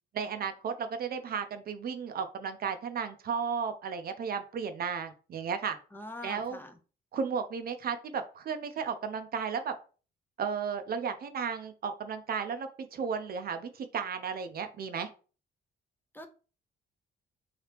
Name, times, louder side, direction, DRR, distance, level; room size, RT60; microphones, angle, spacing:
voice 1, 0.1-5.8 6.2-6.6 7.1-9.7 10.4-15.1, right 6 dB, 50° right, 8 dB, 0.5 m, -34 dB
voice 2, 5.9-6.7 16.1-16.3, left 1 dB, 10° left, 5 dB, 0.5 m, -43 dB
2.9 x 2.8 x 3.3 m, 0.37 s
cardioid pair, 90°, 20 cm